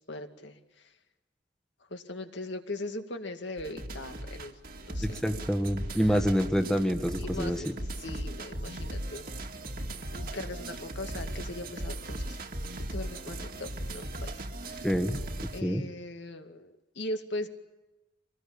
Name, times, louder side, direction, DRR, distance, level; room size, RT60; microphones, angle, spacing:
voice 1, 0.1-0.9 1.9-5.1 5.9-6.2 7.2-7.7 8.0-9.3 10.1-12.4 12.9-14.9 15.5-17.5, left 2 dB, 70° left, 6 dB, 2.3 m, -40 dB
sound 1, 3.6-15.6, right 1 dB, 50° right, 2.1 m, -38 dB
voice 2, 5.0-7.7 14.8-15.2 15.6-15.8, equal, 5° left, 6 dB, 1.4 m, -27 dB
26.0 x 19.5 x 8.7 m, 1.0 s
head